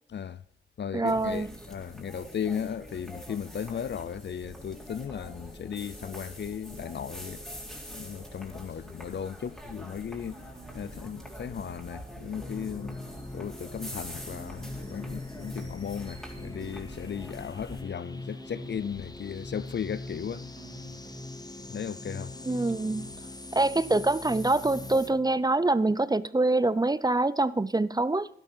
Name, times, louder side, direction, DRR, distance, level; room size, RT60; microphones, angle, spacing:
voice 1, 0.1-0.4 0.8-10.4 10.7-13.0 13.3-20.4 21.7-22.3, left 8 dB, 55° left, 0.6 m, -36 dB
voice 2, 0.9-1.5 22.4-23.1 23.5-28.3, right 2 dB, 20° right, 0.6 m, -25 dB
sound 1, 1.1-17.8, equal, ahead, 4.0 m, -44 dB
sound 2, 10.3-11.3 11.6-11.8 12.1-13.3 14.3-15.3 15.6-15.8 16.1-17.3 18.3-19.3 19.6-19.8 20.1-21.3 22.3-23.3 23.6-23.8 24.1-25.3, right 3 dB, 55° right, 3.6 m, -51 dB
sound 3, 12.3-25.1, left 2 dB, 20° left, 1.1 m, -42 dB
12.0 x 11.5 x 5.6 m
cardioid pair, 55°, 21 cm